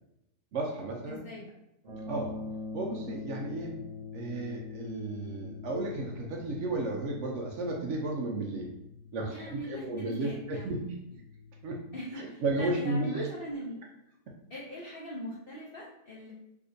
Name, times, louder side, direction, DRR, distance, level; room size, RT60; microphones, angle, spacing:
voice 1, 0.5-1.2 2.1-2.4 2.7-3.8 4.1-8.7 9.1-10.8 11.6-11.8 12.1-13.3, right 2 dB, 85° right, 0 dB, 0.6 m, -33 dB
voice 2, 1.1-1.5 9.3-10.9 11.9-13.8 14.5-16.3, equal, 70° left, -6 dB, 0.5 m, -41 dB
sound 1, 1.8-11.9, left 4 dB, 50° right, 1.0 m, -44 dB
3.3 x 2.8 x 2.6 m, 0.88 s
omnidirectional pair, 1.8 m